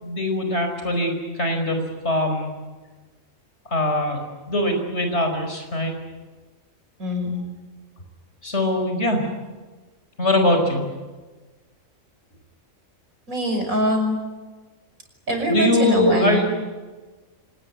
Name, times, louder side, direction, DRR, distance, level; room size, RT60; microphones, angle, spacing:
voice 1, 0.0-2.5 3.7-4.2 4.5-5.9 8.4-9.2 10.2-10.8 15.5-16.4, left 1 dB, 50° left, 5 dB, 5.4 m, -22 dB
voice 2, 7.0-7.4 13.3-14.2 15.3-16.4, left 1 dB, 85° right, 3 dB, 6.2 m, -23 dB
25.5 x 19.5 x 9.7 m, 1.3 s
omnidirectional pair, 1.4 m